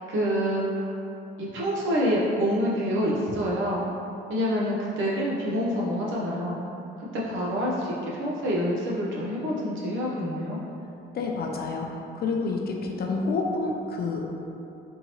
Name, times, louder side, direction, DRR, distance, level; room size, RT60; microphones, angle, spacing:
voice 1, 0.1-1.0 1.4-3.8 4.3-6.6 7.1-10.6, equal, 75° right, -5 dB, 0.9 m, -27 dB
voice 2, 11.1-14.3, left 3 dB, 50° left, 1 dB, 0.5 m, -29 dB
3.6 x 2.9 x 2.9 m, 2.8 s
cardioid pair, 90°, 20 cm